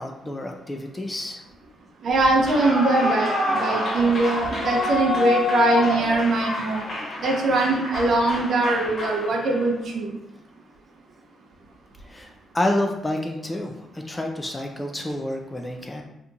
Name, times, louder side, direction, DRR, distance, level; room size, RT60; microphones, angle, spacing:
voice 1, 0.0-1.4 12.0-16.0, left 1 dB, 15° left, 3 dB, 0.3 m, -29 dB
voice 2, 2.0-6.8 7.2-10.1, right 2 dB, 55° right, 1 dB, 0.7 m, -22 dB
Clapping / Cheering / Applause, 2.3-9.7, left 2 dB, 40° left, 1.2 m, -27 dB
2.8 x 2.3 x 3.8 m, 0.84 s
cardioid pair, 130°, 0 cm